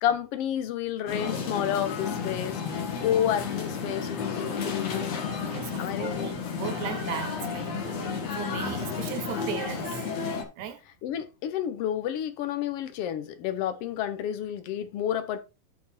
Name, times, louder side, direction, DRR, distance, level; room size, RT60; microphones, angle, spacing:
voice 1, 0.0-5.1 5.8-6.1 11.0-15.4, left 10 dB, 70° left, 1.4 m, -30 dB
sound 1, 1.1-10.4, left 5 dB, 55° left, 2.7 m, -32 dB
voice 2, 5.4-10.0 10.6-10.8, right 9 dB, 70° right, 2.0 m, -37 dB
11.5 x 4.3 x 4.3 m
omnidirectional pair, 3.8 m